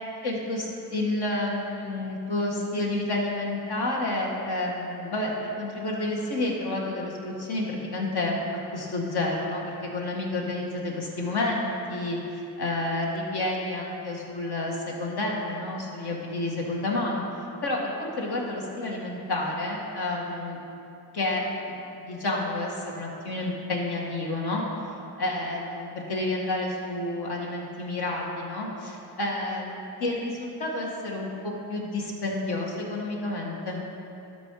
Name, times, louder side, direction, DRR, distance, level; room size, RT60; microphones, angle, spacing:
voice 1, 0.2-8.3 8.7-17.2 17.6-20.6 21.1-24.6 25.2-33.8, left 2 dB, 70° left, -2 dB, 1.9 m, -30 dB
12.5 x 6.3 x 4.8 m, 2.9 s
cardioid pair, 85°, 40 cm